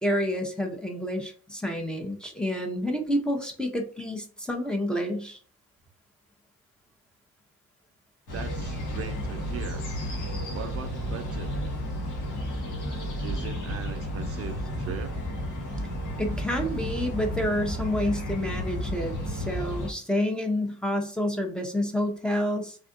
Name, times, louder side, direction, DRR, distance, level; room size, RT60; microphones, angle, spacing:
voice 1, 0.0-5.4 16.2-22.8, equal, 5° left, 0 dB, 0.7 m, -29 dB
sound 1, 8.3-19.9, equal, 85° left, 1.3 m, -32 dB
voice 2, 8.3-9.8 10.5-11.5 13.2-15.2, right 7 dB, 50° right, 6 dB, 0.4 m, -39 dB
3.3 x 2.5 x 2.5 m, 0.42 s
cardioid pair, 90°, 30 cm